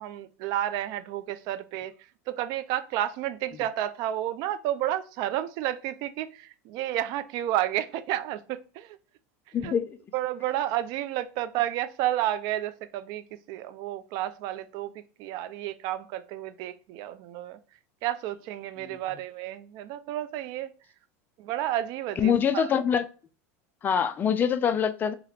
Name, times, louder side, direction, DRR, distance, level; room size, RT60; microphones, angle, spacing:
voice 1, 0.0-1.9 2.3-9.0 9.6-9.7 10.1-17.6 18.0-20.7 21.4-22.7, right 13 dB, 55° right, 0.4 m, -31 dB
voice 2, 9.5-10.0 18.8-19.0 22.2-23.0 23.8-25.1, left 7 dB, 25° left, 0.3 m, -25 dB
2.9 x 2.4 x 3.2 m
supercardioid pair, 115°, 8 cm